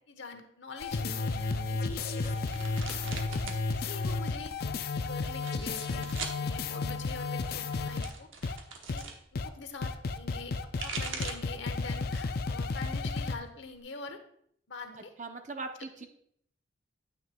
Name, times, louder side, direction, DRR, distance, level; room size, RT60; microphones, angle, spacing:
voice 1, 0.1-2.6 3.3-3.4 3.7-4.7 5.0-8.3 8.9-9.1 9.3-14.2 14.7-15.1, left 3 dB, 75° left, 6 dB, 1.0 m, -45 dB
sound 1, 0.8-8.1 8.4-8.6 8.9-9.0 9.3-9.5 9.8-13.3, left 3 dB, 50° left, 0.4 m, -33 dB
sound 2, 1.9-3.6 3.9-4.6 5.3-6.4 7.4-9.2 10.4-11.6 12.0-12.5 12.8-13.8, right 4 dB, 90° right, 1.1 m, -42 dB
voice 2, 3.1-3.7 15.0-16.1, right 3 dB, 40° right, 6 dB, 0.7 m, -42 dB
9.2 x 8.9 x 2.3 m, 0.68 s
head